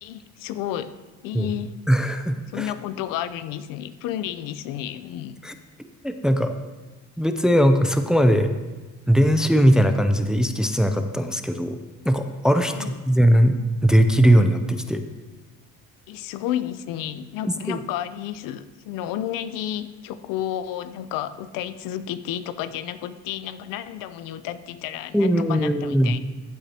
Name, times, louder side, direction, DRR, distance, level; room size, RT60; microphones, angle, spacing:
voice 1, 0.0-0.9 1.2-1.7 2.5-5.4 12.6-13.0 16.1-26.2, left 11 dB, 75° left, 13 dB, 0.6 m, -31 dB
voice 2, 1.9-2.7 5.4-5.5 6.0-6.5 7.2-8.5 9.1-11.8 12.1-13.6 13.8-15.0 17.7-17.8 25.1-26.2, equal, ahead, 7 dB, 0.4 m, -19 dB
14.5 x 8.2 x 2.9 m, 1.2 s
cardioid pair, 135°, 33 cm